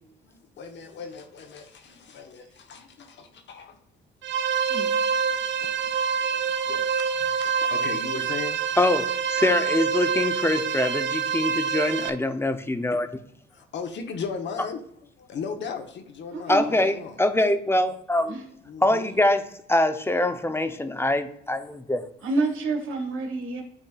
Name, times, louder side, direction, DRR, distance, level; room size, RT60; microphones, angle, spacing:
voice 1, 0.2-3.8 5.1-5.8 6.2-7.1 7.3-8.6 13.5-14.8 15.2-17.2 18.6-19.1, left 5 dB, 65° left, 6 dB, 1.1 m, -37 dB
sound 1, 4.2-12.1, right 6 dB, 65° right, 0.5 m, -26 dB
voice 2, 4.7-5.0 16.3-16.7 18.3-18.4 22.2-23.6, right 3 dB, 85° right, 4 dB, 1.5 m, -28 dB
voice 3, 8.8-13.1 16.5-18.3 18.8-19.4 19.7-22.0, left 1 dB, 10° left, 9 dB, 0.6 m, -24 dB
9.8 x 4.3 x 2.4 m, 0.70 s
cardioid pair, 90°, 20 cm